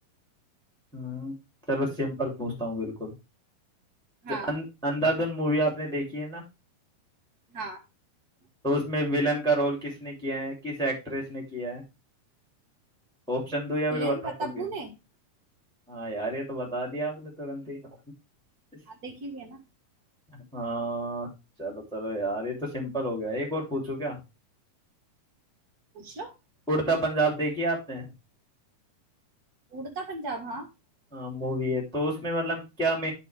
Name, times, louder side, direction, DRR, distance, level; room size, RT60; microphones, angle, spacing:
voice 1, 0.9-1.3 1.7-3.1 4.3-6.4 8.6-11.8 13.3-14.6 15.9-17.8 20.3-21.3 21.6-24.2 26.7-28.1 31.1-33.1, right 1 dB, ahead, -1 dB, 2.6 m, -29 dB
voice 2, 4.2-4.5 7.5-7.8 13.9-14.9 18.9-19.6 25.9-26.3 29.7-30.7, right 2 dB, 40° right, 2 dB, 1.4 m, -36 dB
11.0 x 4.7 x 3.4 m, 0.26 s
omnidirectional pair, 3.7 m